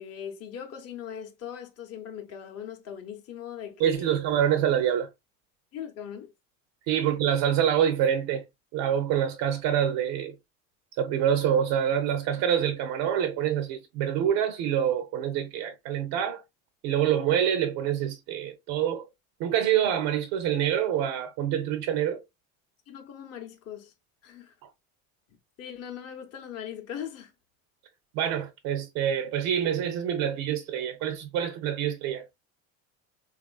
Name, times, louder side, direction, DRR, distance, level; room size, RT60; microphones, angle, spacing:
voice 1, 0.0-4.2 5.7-6.3 7.0-7.1 22.9-23.9 24.2-24.5 25.6-27.3, left 9 dB, 40° left, 0.6 m, -40 dB
voice 2, 3.8-5.1 6.9-8.4 8.7-10.3 11.0-16.4 16.8-19.1 19.4-22.2 28.1-32.3, right 9 dB, 65° right, 0.5 m, -26 dB
3.1 x 2.4 x 2.3 m
supercardioid pair, 90°, 39 cm